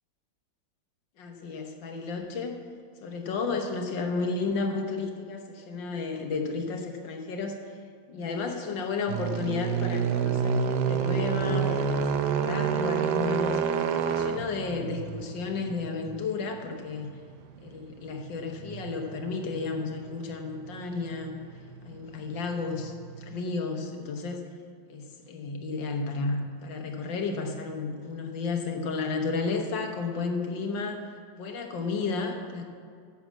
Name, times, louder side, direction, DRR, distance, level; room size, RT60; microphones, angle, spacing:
voice 1, 1.2-2.6 3.0-7.6 8.1-12.0 12.3-13.6 13.9-17.1 17.6-21.4 21.9-24.4 24.9-31.0 31.4-32.7, left 4 dB, 75° left, 3 dB, 1.8 m, -32 dB
sound 1, 9.1-23.4, right 7 dB, 70° right, 1.2 m, -30 dB
10.0 x 7.1 x 7.4 m, 2.2 s
omnidirectional pair, 2.0 m